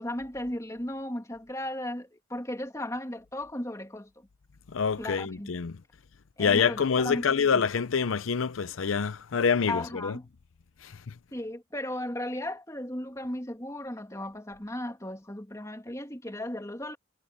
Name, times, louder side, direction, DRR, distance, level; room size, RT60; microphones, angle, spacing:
voice 1, 0.0-4.3 5.0-5.6 6.4-7.6 9.7-10.3 11.3-17.0, left 1 dB, 15° left, 2.5 m, -36 dB
voice 2, 4.7-5.8 6.4-10.2 10.8-10.9, left 6 dB, 85° left, 0.6 m, -26 dB
head